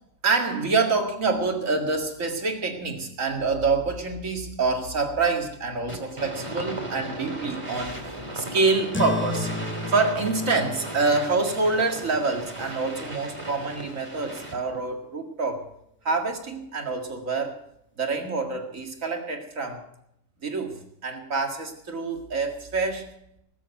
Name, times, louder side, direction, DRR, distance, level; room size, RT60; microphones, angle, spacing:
voice 1, 0.2-8.0 8.3-9.5 9.9-15.6 16.0-17.6 18.0-19.8 20.4-23.1, right 3 dB, 90° right, 3 dB, 2.4 m, -26 dB
sound 1, 5.9-14.8, right 1 dB, 25° right, 2.1 m, -37 dB
sound 2, 8.9-13.8, left 2 dB, 10° left, 0.7 m, -35 dB
19.0 x 7.8 x 8.1 m, 0.78 s
omnidirectional pair, 1.3 m